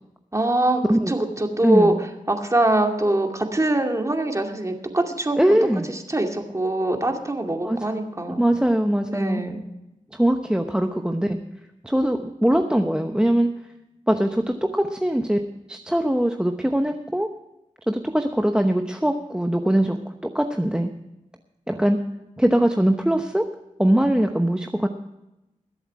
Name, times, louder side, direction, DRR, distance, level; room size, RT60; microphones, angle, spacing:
voice 1, 0.3-5.4 5.9-8.4 9.1-9.6, right 1 dB, 20° right, 3 dB, 2.3 m, -23 dB
voice 2, 1.6-2.0 5.4-5.9 7.6-7.8 8.4-9.4 10.1-11.4 11.8-13.5 14.1-15.4 15.7-17.3 17.9-20.9 21.7-22.0 22.4-23.5 23.8-24.9, right 1 dB, 5° right, 6 dB, 0.9 m, -21 dB
21.5 x 8.0 x 4.7 m, 0.93 s
cardioid pair, 65°, 14 cm